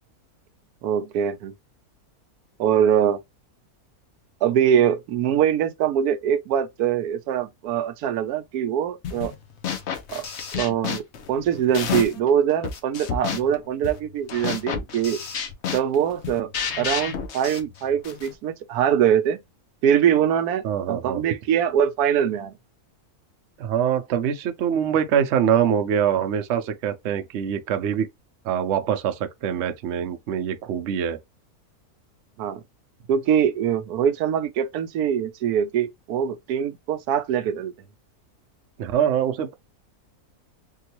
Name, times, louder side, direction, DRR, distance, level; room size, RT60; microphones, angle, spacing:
voice 1, 0.8-1.5 2.6-3.2 4.4-9.3 10.1-10.3 10.6-11.0 11.3-15.2 15.7-16.5 16.8-19.4 19.8-22.5 32.4-32.6 33.1-37.7, right 9 dB, 80° right, 1.1 m, -23 dB
sound 1, 9.0-9.4 9.6-12.3 12.6-18.3, left 7 dB, 55° left, 0.9 m, -31 dB
voice 2, 20.6-21.2 23.6-28.1 28.4-31.2 38.8-39.5, right 8 dB, 60° right, 0.8 m, -24 dB
3.7 x 2.3 x 2.9 m
omnidirectional pair, 1.6 m